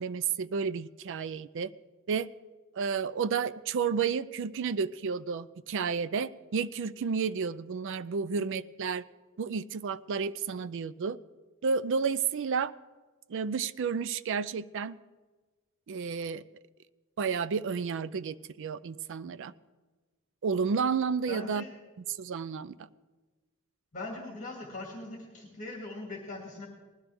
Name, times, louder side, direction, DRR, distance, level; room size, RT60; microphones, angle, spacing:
voice 1, 0.0-1.7 2.1-2.3 2.7-9.0 9.4-11.2 11.6-12.7 13.3-15.0 15.9-16.4 17.2-19.5 20.4-21.6 22.0-22.9, right 5 dB, 60° right, 16 dB, 0.4 m, -31 dB
voice 2, 21.3-21.7 23.9-26.7, left 2 dB, 35° left, -1 dB, 2.2 m, -40 dB
19.5 x 12.5 x 3.5 m, 1.3 s
head